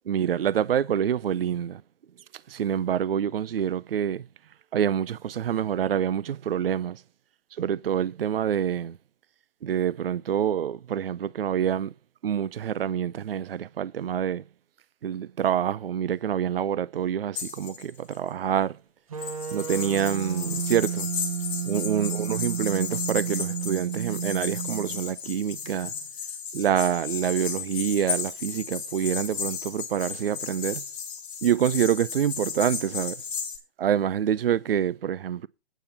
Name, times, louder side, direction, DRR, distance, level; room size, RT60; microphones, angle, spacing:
voice 1, 0.1-1.8 2.5-4.2 4.7-7.0 7.6-9.0 9.6-11.9 12.2-14.4 15.0-18.8 19.5-21.1 21.7-25.9 26.5-30.8 31.4-33.2 33.8-35.5, right 9 dB, 60° right, 0.5 m, -26 dB
sound 1, 17.3-18.1 19.2-33.6, left 7 dB, 5° left, 0.6 m, -34 dB
sound 2, 19.1-25.2, right 8 dB, 35° right, 0.9 m, -32 dB
9.2 x 5.8 x 6.9 m
hypercardioid pair, 160°, 32 cm